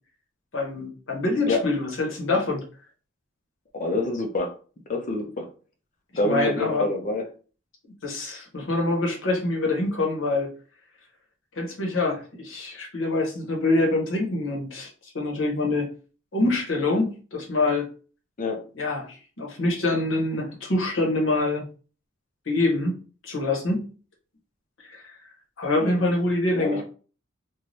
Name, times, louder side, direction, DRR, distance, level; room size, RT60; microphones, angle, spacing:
voice 1, 0.5-2.6 6.2-6.9 8.0-10.5 11.5-15.9 16.3-17.9 18.7-21.6 22.5-23.9 24.8-25.2 25.6-26.8, left 2 dB, 70° left, -1 dB, 1.0 m, -25 dB
voice 2, 3.7-4.5 4.9-5.5 6.1-7.2 18.4-18.6 25.8-26.1 26.5-26.8, left 2 dB, 40° left, 4 dB, 0.6 m, -26 dB
3.2 x 2.3 x 2.6 m, 0.38 s
head